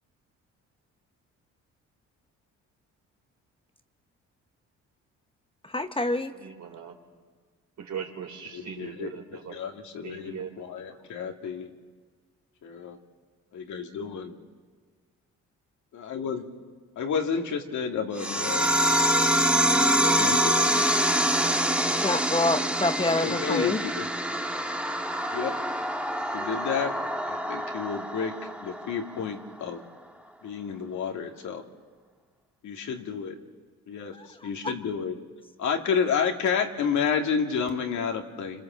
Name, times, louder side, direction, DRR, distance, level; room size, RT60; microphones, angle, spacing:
voice 1, 5.6-6.3 21.9-23.8 34.1-34.7, left 2 dB, 15° left, 8 dB, 1.2 m, -27 dB
voice 2, 6.3-6.9 7.8-9.6 10.0-10.5, right 7 dB, 65° right, 3 dB, 4.1 m, -39 dB
voice 3, 8.5-11.7 12.6-13.0 13.5-14.3 15.9-16.5 17.0-18.8 19.9-20.7 23.0-24.1 25.3-25.5 26.3-26.9 27.3-29.8 30.4-31.6 32.6-33.3 33.9-35.1 35.6-38.6, left 6 dB, 70° left, 3 dB, 2.6 m, -30 dB
sound 1, 18.2-29.2, right 1 dB, 5° right, 1.6 m, -25 dB
29.5 x 26.0 x 7.6 m, 1.5 s
cardioid pair, 90°, 30 cm